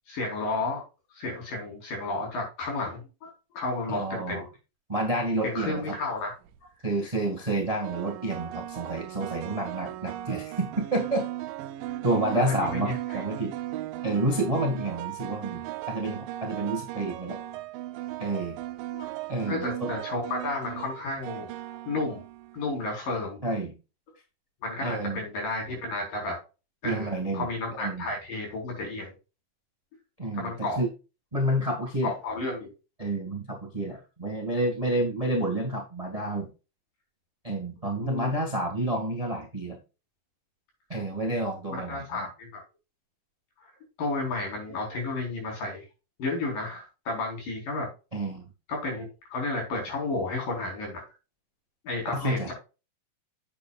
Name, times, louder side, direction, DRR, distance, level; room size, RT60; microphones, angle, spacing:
voice 1, 0.1-0.8 1.1-4.5 5.4-6.3 12.3-13.2 18.9-19.1 19.5-21.5 21.9-22.2 22.5-23.4 24.6-26.4 26.8-29.1 30.3-30.8 32.0-32.7 38.0-38.3 41.2-41.3 41.7-42.6 43.6-43.7 44.0-45.9 46.2-47.9 48.7-51.0 51.8-52.5, left 2 dB, 65° left, 0 dB, 5.8 m, -32 dB
voice 2, 3.9-4.4 4.9-5.9 6.8-11.2 12.0-13.5 14.0-17.4 18.2-18.6 19.3-19.9 23.4-23.7 24.8-25.2 26.8-28.1 30.2-30.9 31.3-32.1 33.0-36.5 37.4-39.8 40.9-42.3 48.1-48.4 52.1-52.5, right 1 dB, 25° right, 2 dB, 0.8 m, -29 dB
sound 1, 6.2-6.6 7.8-22.7, right 14 dB, 80° right, 2.3 m, -37 dB
8.9 x 8.3 x 2.4 m, 0.30 s
omnidirectional pair, 4.1 m